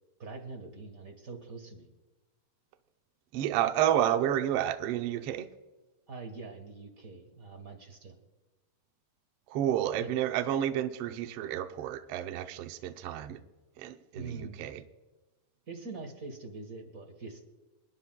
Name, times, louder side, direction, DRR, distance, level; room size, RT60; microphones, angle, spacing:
voice 1, 0.2-1.9 6.1-8.1 9.9-10.1 14.1-14.6 15.7-17.4, right 3 dB, 45° right, 3 dB, 1.1 m, -43 dB
voice 2, 3.3-5.5 9.5-13.4 13.8-14.8, right 11 dB, 90° right, 8 dB, 1.3 m, -30 dB
28.5 x 10.0 x 2.3 m, 1.2 s
omnidirectional pair, 3.6 m